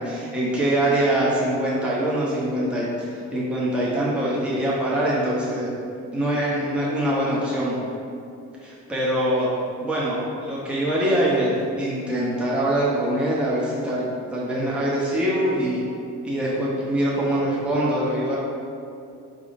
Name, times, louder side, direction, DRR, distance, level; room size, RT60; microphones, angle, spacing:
voice 1, 0.0-5.7 6.1-7.7 8.6-9.5 9.8-15.8 16.2-18.4, right 1 dB, 5° right, -7 dB, 0.7 m, -24 dB
4.6 x 3.5 x 2.6 m, 2.5 s
cardioid pair, 90°, 30 cm